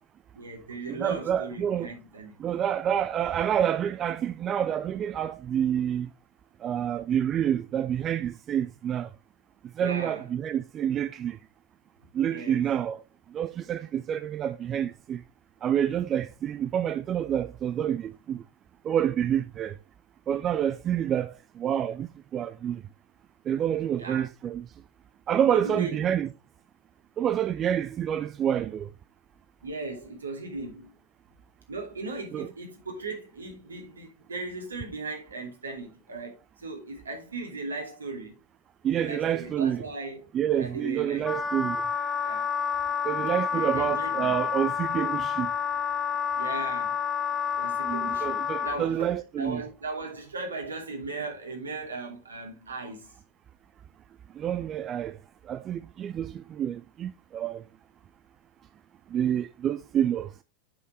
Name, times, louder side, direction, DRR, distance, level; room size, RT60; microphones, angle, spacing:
voice 1, 0.4-2.4 9.8-10.2 12.3-12.6 24.0-24.2 25.4-26.0 29.6-30.9 31.7-38.4 38.9-41.3 42.2-42.4 43.3-44.3 46.3-47.0 47.6-53.1, right 3 dB, 75° right, 2.6 m, -38 dB
voice 2, 0.9-1.9 2.4-6.1 6.6-9.1 9.7-11.4 12.1-13.0 13.3-15.2 15.6-18.4 18.8-19.8 20.3-22.8 23.5-24.7 25.3-26.3 27.2-28.9 32.3-32.5 38.8-39.8 40.3-41.8 43.0-45.5 47.9-49.6 54.3-55.2 55.4-57.6 59.1-60.3, right 9 dB, 30° right, 0.4 m, -28 dB
Wind instrument woodwind instrument, 41.2-48.8, left 7 dB, 15° left, 0.8 m, -29 dB
7.8 x 6.4 x 3.3 m
figure-of-eight pair, 90°, 0 cm